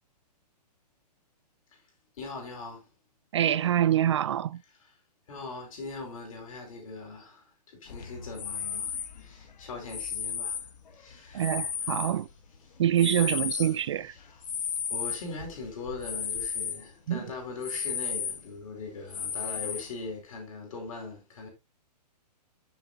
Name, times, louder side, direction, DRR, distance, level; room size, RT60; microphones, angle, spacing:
voice 1, 2.1-2.9 4.8-4.9 5.3-12.0 12.7-13.2 14.1-21.5, left 3 dB, 55° left, 4.7 m, -41 dB
voice 2, 3.3-4.6 11.3-12.3 12.8-14.1 17.1-17.2, right 11 dB, 45° right, 0.4 m, -25 dB
sound 1, 7.9-12.6 12.9-16.8 17.2-17.3 17.6-18.6 19.1-20.1, left 7 dB, 80° left, 1.8 m, -34 dB
13.0 x 7.1 x 2.6 m
hypercardioid pair, 165°, 21 cm